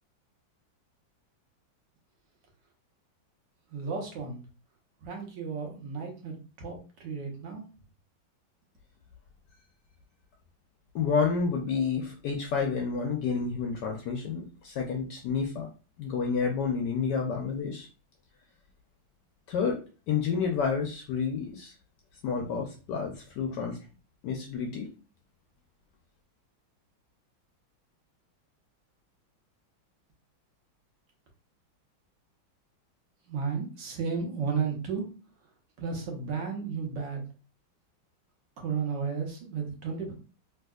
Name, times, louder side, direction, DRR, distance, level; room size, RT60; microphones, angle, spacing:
voice 1, 3.7-4.4 5.0-7.7 33.3-35.1 35.8-37.2 38.6-40.1, right 5 dB, 65° right, 1 dB, 1.4 m, -33 dB
voice 2, 10.9-15.7 16.0-17.9 19.5-21.7 22.2-23.8 24.2-24.9, left 5 dB, 75° left, 2 dB, 1.0 m, -30 dB
3.4 x 2.7 x 2.3 m, 0.34 s
omnidirectional pair, 2.2 m